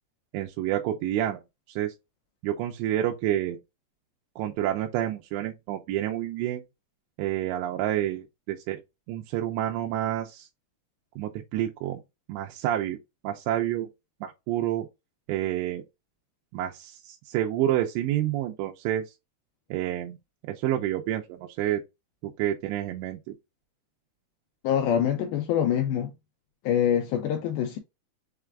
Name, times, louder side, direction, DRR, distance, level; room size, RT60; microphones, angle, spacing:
voice 1, 0.3-1.4 1.7-1.9 2.4-3.6 4.4-6.6 7.2-8.8 9.1-10.5 11.2-12.0 12.3-13.0 13.2-13.9 14.2-14.9 15.3-15.8 16.5-19.0 19.7-20.2 20.5-21.8 22.2-23.2, right 12 dB, 90° right, 2.9 m, -28 dB
voice 2, 24.6-26.1 26.6-27.8, left 9 dB, 85° left, 2.2 m, -25 dB
6.6 x 2.4 x 3.3 m
omnidirectional pair, 4.9 m